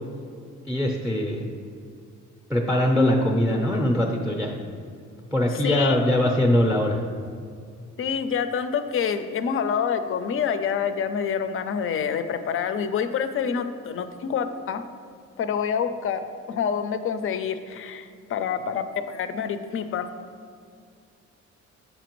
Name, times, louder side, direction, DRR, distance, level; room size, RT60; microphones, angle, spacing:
voice 1, 0.7-1.5 2.5-4.5 5.3-7.0, left 1 dB, 5° right, 0 dB, 0.6 m, -22 dB
voice 2, 5.6-6.0 8.0-14.8 15.4-20.1, left 7 dB, 45° left, 9 dB, 0.4 m, -27 dB
6.6 x 5.0 x 3.0 m, 2.3 s
cardioid pair, 90°, 30 cm